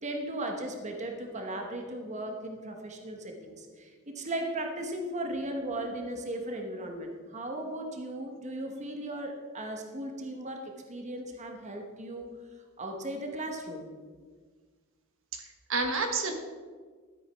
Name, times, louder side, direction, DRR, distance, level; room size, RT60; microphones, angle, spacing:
voice 1, 0.0-12.3 12.8-13.9, right 1 dB, 35° right, 2 dB, 1.2 m, -37 dB
voice 2, 15.3-16.3, right 4 dB, 65° right, 5 dB, 1.3 m, -30 dB
12.5 x 8.4 x 4.6 m, 1.5 s
head